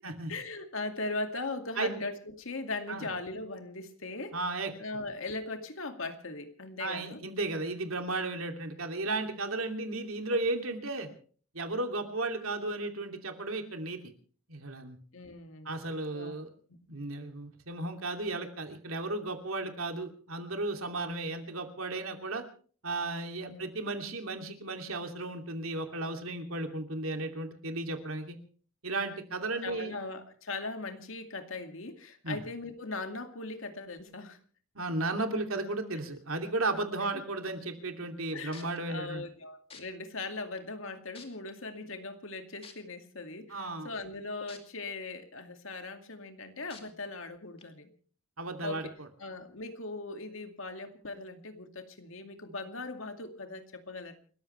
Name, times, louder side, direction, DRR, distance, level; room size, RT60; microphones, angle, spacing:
voice 1, 0.3-4.4 4.8-7.2 15.1-15.7 16.1-16.4 16.7-16.8 21.0-21.1 23.4-23.7 29.6-34.4 38.3-47.9 48.6-48.9 49.2-54.1, left 3 dB, 65° left, 6 dB, 2.3 m, -39 dB
voice 2, 4.3-4.7 6.8-11.1 11.5-14.1 14.5-15.0 15.6-16.5 16.9-22.4 22.8-28.4 28.8-29.9 32.2-32.4 34.7-39.2 43.5-43.9 48.4-49.1, right 2 dB, 75° right, 5 dB, 2.8 m, -34 dB
sound 1, 38.2-38.3 38.5-38.8 39.7-39.8 40.6-40.7 41.1-41.5 42.6-42.7 44.5-44.6 45.1-45.2 46.7-46.8 47.6-47.7, left 5 dB, 25° left, 2.4 m, -48 dB
29.5 x 14.5 x 3.3 m, 0.44 s
head